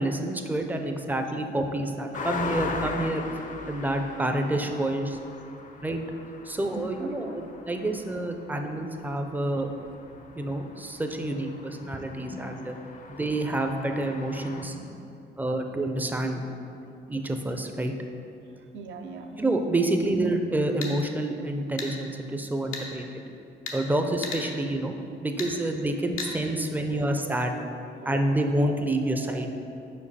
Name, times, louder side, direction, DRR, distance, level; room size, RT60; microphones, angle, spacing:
voice 1, 0.0-3.2 3.7-5.2 5.8-6.0 6.4-9.7 10.3-12.8 13.1-15.0 15.4-16.4 17.1-17.9 19.4-23.2 23.7-24.9 25.2-27.6 28.1-29.5, right 1 dB, 10° right, 5 dB, 0.5 m, -28 dB
sound 1, 2.1-14.6, left 4 dB, 40° left, 0.5 m, -40 dB
voice 2, 18.6-19.4 26.9-27.1 28.0-28.7 29.1-29.9, right 4 dB, 70° right, 4 dB, 0.6 m, -43 dB
sound 2, 20.6-20.9 21.8-21.9 22.7-22.9 23.7-23.8 24.2-24.4 25.4-25.5 26.2-26.3, left 4 dB, 90° left, 0.9 m, -34 dB
5.2 x 4.6 x 4.1 m, 2.6 s
cardioid pair, 90°, 20 cm